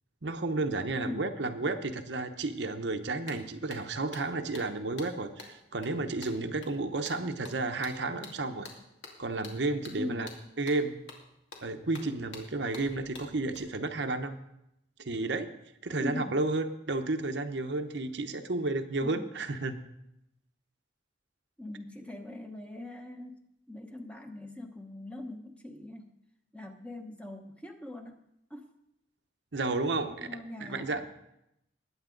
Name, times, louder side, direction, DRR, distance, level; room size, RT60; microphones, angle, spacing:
voice 1, 0.2-8.7 9.2-10.3 10.6-11.0 11.6-14.4 15.0-15.5 15.8-19.8 29.5-30.3 30.6-31.1, right 2 dB, 65° right, 7 dB, 0.9 m, -32 dB
voice 2, 0.9-1.3 10.0-10.3 16.0-16.4 19.0-19.4 21.6-26.1 26.5-28.2 28.5-28.7 30.2-31.1, left 1 dB, 5° left, 4 dB, 1.0 m, -41 dB
sound 1, 2.9-3.0 3.3-13.6, left 3 dB, 75° left, 2.4 m, -49 dB
20.0 x 8.7 x 3.9 m, 0.82 s
head